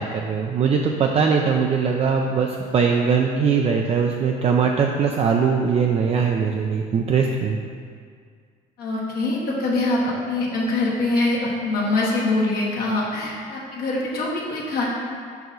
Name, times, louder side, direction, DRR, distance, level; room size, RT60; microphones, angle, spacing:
voice 1, 0.0-7.6, right 6 dB, 35° right, 1 dB, 0.4 m, -21 dB
voice 2, 8.8-14.8, left 2 dB, 65° left, -4 dB, 1.0 m, -24 dB
5.3 x 4.8 x 3.9 m, 2.1 s
cardioid pair, 110°, 17 cm